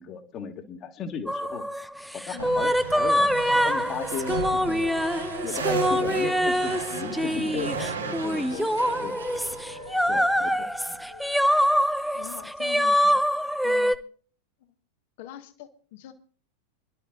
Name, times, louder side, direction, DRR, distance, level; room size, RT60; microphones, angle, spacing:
voice 1, 0.0-1.7 2.1-4.8 5.4-9.1 10.1-11.0, left 6 dB, 30° left, 6 dB, 2.0 m, -36 dB
sound 1, 1.3-13.9, equal, ahead, 0.6 m, -25 dB
sound 2, 2.4-11.0, right 5 dB, 75° right, 2.1 m, -35 dB
Wind instrument woodwind instrument, 3.8-7.4 7.7-11.5, left 4 dB, 80° left, 3.1 m, -46 dB
voice 2, 12.0-13.2 13.6-14.0 14.6-14.7 15.2-16.1, left 12 dB, 50° left, 9 dB, 1.6 m, -43 dB
27.5 x 12.0 x 2.5 m, 0.43 s
figure-of-eight pair, 90°, 0 cm